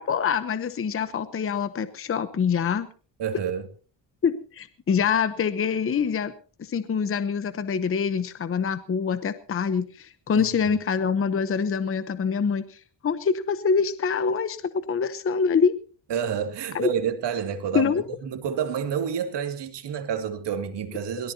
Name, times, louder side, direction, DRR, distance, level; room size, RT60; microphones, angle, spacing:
voice 1, 0.0-2.9 4.2-6.3 6.6-15.7 16.7-16.9 17.7-18.0, left 6 dB, 30° left, 0.9 m, -25 dB
voice 2, 3.2-3.7 10.3-10.5 16.1-17.9 18.2-21.3, right 8 dB, 60° right, 2.4 m, -29 dB
23.0 x 18.0 x 2.8 m
cardioid pair, 150°, 46 cm